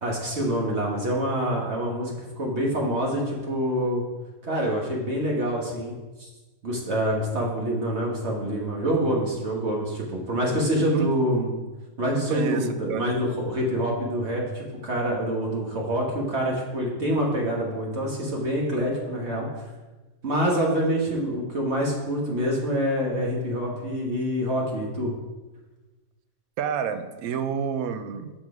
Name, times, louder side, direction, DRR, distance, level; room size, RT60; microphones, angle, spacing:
voice 1, 0.0-4.0 4.4-6.3 6.6-11.5 12.0-19.5 20.2-25.1, equal, 55° right, -2 dB, 1.5 m, -26 dB
voice 2, 12.1-13.0 26.6-28.3, right 7 dB, 85° right, 9 dB, 1.1 m, -29 dB
6.2 x 6.1 x 4.8 m, 1.2 s
omnidirectional pair, 1.5 m